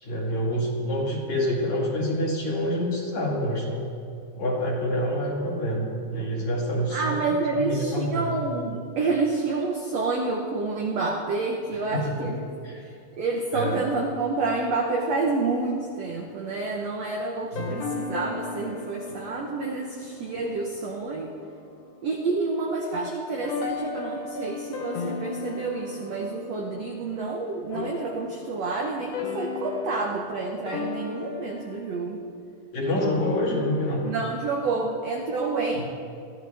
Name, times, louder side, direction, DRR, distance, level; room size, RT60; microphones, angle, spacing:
voice 1, 0.0-3.9 4.4-8.3 11.9-12.3 12.6-12.8 13.5-13.8 17.5-17.9 32.7-34.0 35.7-35.8, equal, 50° left, -4 dB, 3.4 m, -27 dB
voice 2, 6.9-12.4 12.8-21.3 22.0-32.2 34.0-35.8, right 3 dB, 80° right, 0 dB, 1.4 m, -29 dB
sound 1, 16.2-16.6 17.6-21.3 21.6-22.3 22.9-28.7 29.1-30.2 30.7-31.8 33.0-34.5, left 4 dB, 90° left, 1.3 m, -36 dB
22.0 x 14.5 x 3.5 m, 2.6 s
omnidirectional pair, 4.5 m